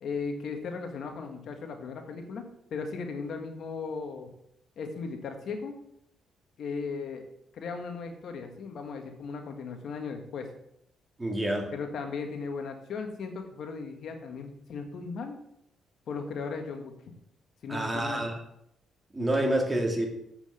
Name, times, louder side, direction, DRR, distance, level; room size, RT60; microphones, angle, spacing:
voice 1, 0.0-2.4 2.7-4.3 4.8-5.7 6.6-7.3 7.5-10.5 11.7-15.4 16.1-16.9 17.6-18.2, left 4 dB, 65° left, 5 dB, 1.7 m, -37 dB
voice 2, 11.2-11.7 17.7-18.3 19.1-20.1, right 1 dB, 20° right, 2 dB, 2.4 m, -27 dB
8.0 x 6.9 x 6.9 m, 0.77 s
cardioid pair, 90°, 0 cm